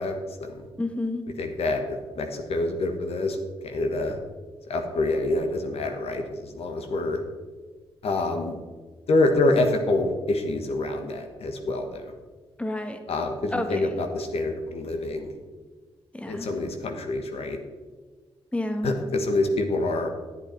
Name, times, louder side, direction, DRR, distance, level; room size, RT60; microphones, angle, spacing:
voice 1, 0.0-0.7 1.4-3.4 3.6-4.2 4.7-7.2 8.0-8.5 9.1-12.1 13.1-15.3 16.3-17.6 18.8-20.1, left 2 dB, 80° left, 5 dB, 1.3 m, -26 dB
voice 2, 0.8-1.3 12.6-13.0 13.5-13.9 16.1-16.5 18.5-18.9, left 1 dB, 10° left, 6 dB, 1.3 m, -30 dB
11.5 x 7.9 x 4.5 m, 1.4 s
cardioid pair, 70°, 10 cm